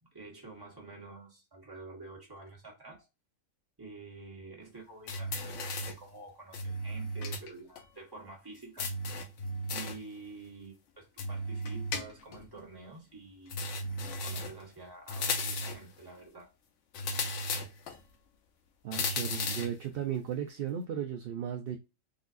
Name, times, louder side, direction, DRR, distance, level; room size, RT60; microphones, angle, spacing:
voice 1, 0.0-3.1 3.8-8.9 9.7-13.6 13.9-16.5, right 3 dB, 20° right, 1.4 m, -49 dB
sound 1, 5.1-6.1 6.5-7.5 7.7-7.8 8.8-10.1 11.2-12.4 13.5-14.6 15.1-15.9 16.9-18.0 18.9-19.8, left 2 dB, 70° left, 1.0 m, -35 dB
voice 2, 18.8-21.8, right 9 dB, 60° right, 0.6 m, -35 dB
4.0 x 2.8 x 2.5 m
omnidirectional pair, 1.4 m